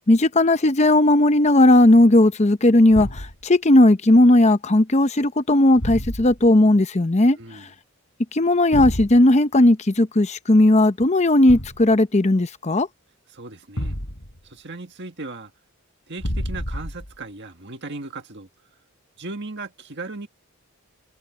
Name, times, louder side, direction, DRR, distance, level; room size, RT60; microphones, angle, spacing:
voice 1, 0.0-7.4 8.3-12.9, left 1 dB, 30° left, 0.7 m, -16 dB
Thump thud, 2.9-3.4 5.8-6.5 8.7-9.2 11.5-11.9 13.8-14.4 16.2-17.2, equal, 60° left, 7.1 m, -29 dB
voice 2, 7.3-7.7 13.3-14.0 14.4-15.5 16.1-18.5 19.2-20.3, right 3 dB, 50° right, 1.8 m, -36 dB
head